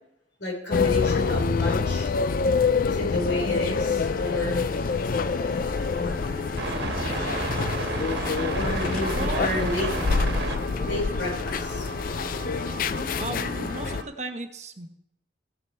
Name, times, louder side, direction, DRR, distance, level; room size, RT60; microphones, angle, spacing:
voice 1, 0.4-2.1 2.8-4.6 8.5-9.9 10.8-11.9, left 1 dB, 75° left, -2 dB, 4.7 m, -30 dB
sound 1, 0.7-14.0, left 5 dB, 45° left, 0.4 m, -26 dB
sound 2, 4.0-14.1, right 2 dB, 60° right, 1.5 m, -34 dB
voice 2, 9.1-9.8 13.2-14.9, right 2 dB, 35° right, 6 dB, 1.0 m, -35 dB
15.5 x 6.7 x 4.5 m, 0.80 s
head